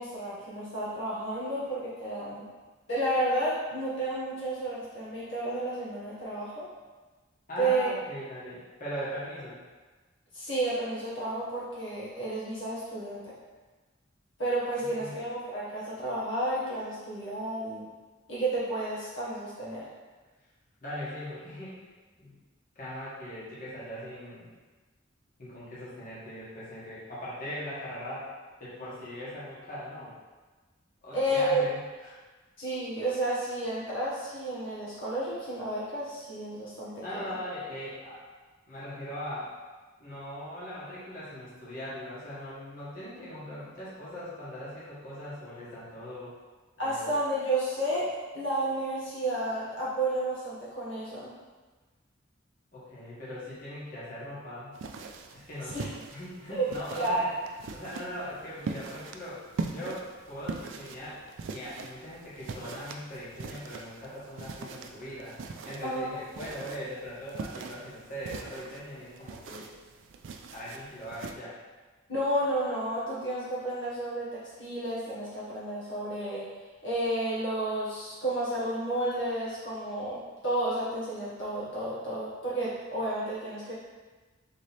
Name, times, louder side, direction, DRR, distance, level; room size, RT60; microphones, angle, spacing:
voice 1, 0.0-2.5 2.9-6.7 7.6-7.9 10.3-13.3 14.4-17.9 18.3-19.9 31.1-31.6 32.6-37.2 46.8-51.3 55.7-55.9 56.5-57.3 65.8-66.2 72.1-76.5 76.8-83.7, right 1 dB, 80° left, -8 dB, 1.3 m, -31 dB
voice 2, 7.5-9.6 14.8-15.1 20.8-21.8 22.2-22.4 22.7-24.5 25.4-28.3 28.6-30.1 31.0-32.2 37.0-38.2 38.7-39.5 40.0-46.4 46.8-47.1 52.7-54.7 55.3-57.3 57.7-69.7 70.5-71.6, equal, 45° left, -9 dB, 1.5 m, -40 dB
sound 1, 54.7-71.3, right 4 dB, 80° right, 0.4 m, -42 dB
3.8 x 3.2 x 4.2 m, 1.3 s
head